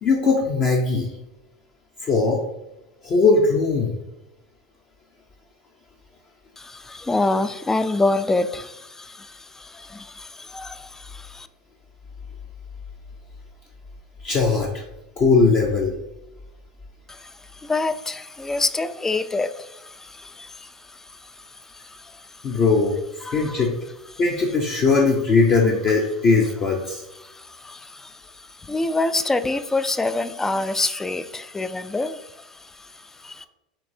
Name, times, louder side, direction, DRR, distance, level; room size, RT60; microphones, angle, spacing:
voice 1, 0.0-1.1 2.0-2.4 3.0-3.9 14.2-14.8 15.2-15.9 22.4-23.0 23.3-23.7 24.2-27.0, left 4 dB, 35° left, -1 dB, 0.7 m, -19 dB
voice 2, 6.6-11.5 17.1-22.6 23.2-23.7 27.2-33.5, left 2 dB, 10° left, 12 dB, 0.3 m, -27 dB
6.0 x 3.2 x 2.7 m, 0.94 s
hypercardioid pair, 90°, 4 cm